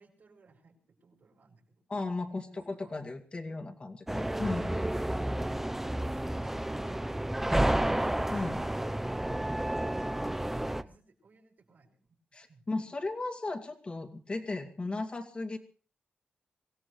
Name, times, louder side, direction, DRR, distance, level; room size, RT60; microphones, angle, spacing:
voice 1, 0.0-1.9 2.3-2.9 9.3-12.8, right 3 dB, 65° right, 0 dB, 5.9 m, -63 dB
voice 2, 1.9-4.7 8.3-8.6 12.3-15.6, left 3 dB, 35° left, 4 dB, 2.4 m, -36 dB
sound 1, 4.1-10.8, right 1 dB, 10° right, 0.7 m, -31 dB
24.5 x 17.0 x 3.2 m, 0.40 s
wide cardioid pair, 110°, 3 cm